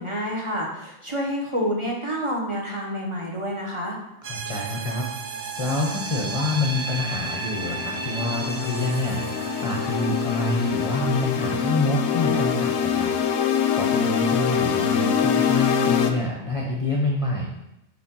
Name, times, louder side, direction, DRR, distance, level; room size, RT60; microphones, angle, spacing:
voice 1, 0.0-4.0, equal, 25° right, -2 dB, 1.1 m, -28 dB
voice 2, 4.2-5.1 5.3-17.5, left 2 dB, 35° left, -2 dB, 0.7 m, -27 dB
sound 1, 4.2-11.4, right 4 dB, 45° right, 0.6 m, -34 dB
sound 2, 7.0-16.1, left 7 dB, 65° left, 0.7 m, -24 dB
5.1 x 4.1 x 5.4 m, 0.87 s
omnidirectional pair, 1.2 m